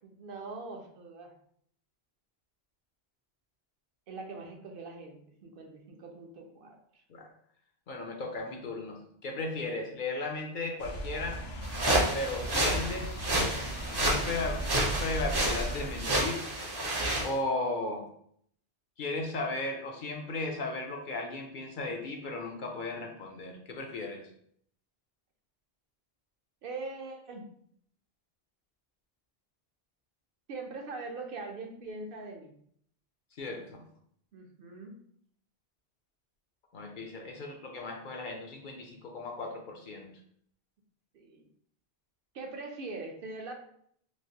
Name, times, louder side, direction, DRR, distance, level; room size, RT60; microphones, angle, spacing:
voice 1, 0.0-1.3 4.1-7.0 26.6-27.5 30.5-32.5 34.3-35.0 41.1-41.4 42.3-43.5, right 3 dB, 65° right, 3 dB, 0.7 m, -42 dB
voice 2, 7.9-11.4 12.1-13.2 13.6-16.4 17.2-18.1 19.0-24.2 33.4-33.8 36.7-40.1, left 2 dB, 60° left, 2 dB, 0.6 m, -36 dB
sound 1, 10.8-16.0, right 1 dB, 85° left, 0.9 m, -37 dB
sound 2, 11.6-17.3, right 1 dB, 30° right, 0.5 m, -30 dB
3.1 x 2.5 x 2.7 m, 0.65 s
omnidirectional pair, 1.0 m